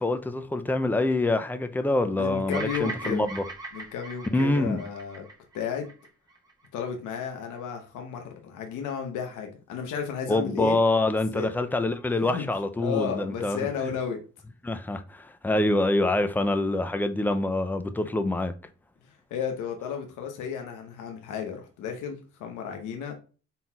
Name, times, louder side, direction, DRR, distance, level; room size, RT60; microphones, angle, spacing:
voice 1, 0.0-3.4 4.3-4.8 10.3-13.7 14.6-18.5, left 2 dB, 5° left, 0.4 m, -25 dB
voice 2, 2.1-3.2 3.7-5.3 5.5-5.9 6.7-10.8 11.3-11.5 12.2-12.4 12.8-14.2 19.3-23.1, left 7 dB, 85° left, 0.9 m, -33 dB
Bird vocalization bird call bird song, 2.5-6.8, right 2 dB, 10° right, 0.9 m, -40 dB
4.1 x 3.8 x 2.3 m
cardioid pair, 90°, 30 cm